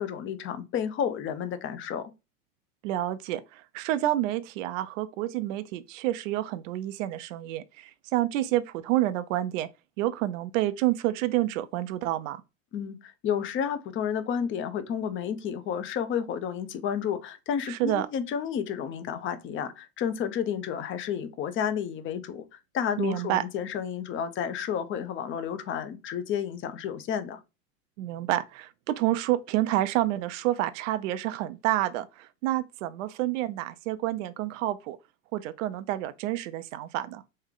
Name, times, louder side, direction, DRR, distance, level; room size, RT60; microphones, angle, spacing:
voice 1, 0.0-2.1 12.7-27.4, left 8 dB, 30° left, 0.6 m, -31 dB
voice 2, 2.8-9.7 10.0-12.4 17.7-18.1 23.0-23.4 28.0-35.0 35.3-37.2, right 14 dB, 65° right, 0.5 m, -29 dB
3.5 x 3.3 x 3.7 m
hypercardioid pair, 110°, 42 cm